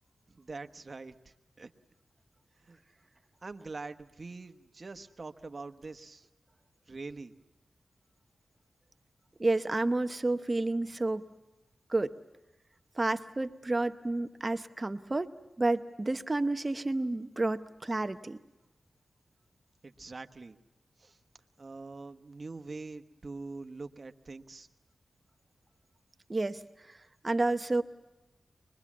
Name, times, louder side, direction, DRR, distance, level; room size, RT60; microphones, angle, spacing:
voice 1, 0.3-1.7 2.6-2.8 3.4-6.3 6.9-7.4 19.8-20.6 21.0-21.2 21.6-24.7, right 3 dB, 45° right, 8 dB, 1.1 m, -44 dB
voice 2, 9.4-11.2 11.9-12.1 13.0-15.3 15.6-18.4 26.3-26.6 26.9-27.0 27.2-27.8, right 2 dB, 30° right, 9 dB, 0.8 m, -30 dB
25.0 x 21.5 x 7.3 m, 1.0 s
wide cardioid pair, 70°, 0 cm